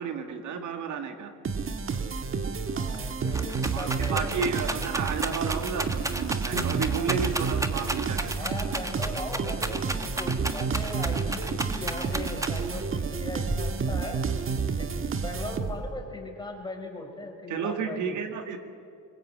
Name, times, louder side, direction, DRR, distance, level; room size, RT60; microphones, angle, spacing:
voice 1, 0.0-1.3 3.7-8.5 17.5-18.6, right 6 dB, 75° right, 6 dB, 2.0 m, -32 dB
sound 1, 1.4-16.0, right 5 dB, 45° right, 1.6 m, -30 dB
Rattle, 2.6-2.7 2.9-12.9 13.5-14.1, right 1 dB, 10° right, 1.4 m, -33 dB
voice 2, 2.7-4.2 8.3-14.3 14.7-14.9 15.2-18.2, left 2 dB, 15° left, 1 dB, 4.8 m, -39 dB
21.5 x 20.5 x 8.6 m, 2.4 s
cardioid pair, 90°, 30 cm